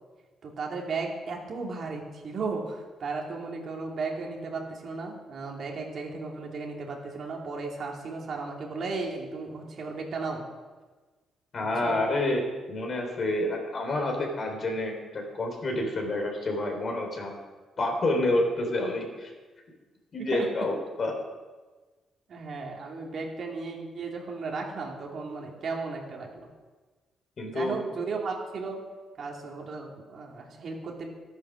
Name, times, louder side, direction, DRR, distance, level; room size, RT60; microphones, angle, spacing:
voice 1, 0.4-10.4 11.6-12.0 20.2-20.5 22.3-26.5 27.5-28.8 29.2-31.1, right 4 dB, 55° right, 0 dB, 2.8 m, -35 dB
voice 2, 11.5-12.4 12.7-17.3 17.8-19.3 20.1-21.1 27.4-27.7, left 2 dB, 45° left, 2 dB, 3.5 m, -28 dB
12.5 x 9.5 x 6.3 m, 1.3 s
cardioid pair, 90°, 0 cm